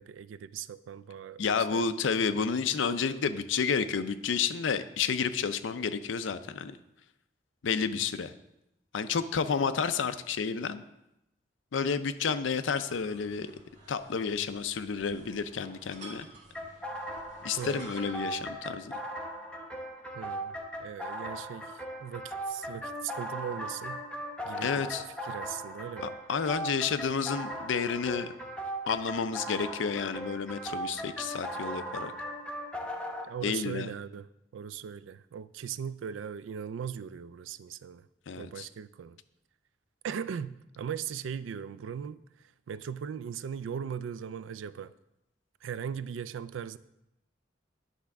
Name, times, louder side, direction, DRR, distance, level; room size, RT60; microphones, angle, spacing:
voice 1, 0.0-2.1 17.6-17.9 20.1-24.0 24.4-24.9 25.2-26.1 33.2-34.3 34.5-38.1 38.4-39.2 40.0-44.9 45.6-46.8, right 8 dB, 90° right, 16 dB, 0.3 m, -39 dB
voice 2, 1.4-6.8 7.6-8.3 8.9-10.8 11.7-13.5 13.9-16.3 17.4-18.9 24.6-25.0 26.0-28.3 28.9-32.1 33.4-33.9 38.3-38.7, left 6 dB, 85° left, 11 dB, 0.5 m, -30 dB
sound 1, 12.8-18.6, right 2 dB, 40° right, 1.8 m, -52 dB
sound 2, 16.5-33.3, right 1 dB, 5° left, 0.7 m, -38 dB
9.9 x 3.5 x 5.8 m, 0.86 s
head